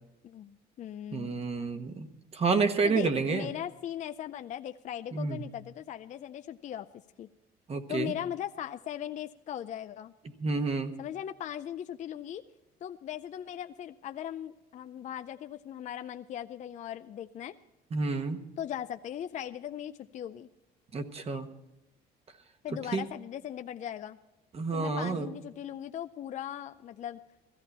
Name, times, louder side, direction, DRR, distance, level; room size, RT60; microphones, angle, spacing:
voice 1, 0.2-1.4 2.8-6.9 7.2-7.3 7.9-10.1 11.0-12.4 12.8-17.6 18.6-20.5 22.6-24.2 24.7-27.2, left 10 dB, 45° left, 9 dB, 0.5 m, -39 dB
voice 2, 1.1-2.1 2.3-3.5 5.1-5.4 7.7-8.1 10.4-10.9 17.9-18.4 20.9-21.5 22.7-23.0 24.5-25.3, right 4 dB, 35° right, 7 dB, 1.2 m, -29 dB
15.5 x 14.5 x 4.2 m, 0.94 s
cardioid pair, 110°, 17 cm